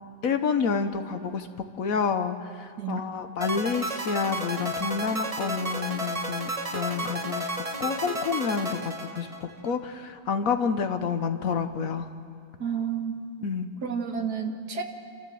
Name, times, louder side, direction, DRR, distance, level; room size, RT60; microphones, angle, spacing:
voice 1, 0.2-1.5 1.8-7.5 7.8-12.1 13.4-13.7, left 6 dB, 60° left, 8 dB, 1.2 m, -29 dB
sound 1, 3.4-9.7, right 1 dB, 25° right, 1.1 m, -32 dB
voice 2, 12.6-13.2 13.8-14.8, right 7 dB, 65° right, 4 dB, 2.0 m, -30 dB
29.5 x 13.0 x 7.7 m, 2.3 s
omnidirectional pair, 1.8 m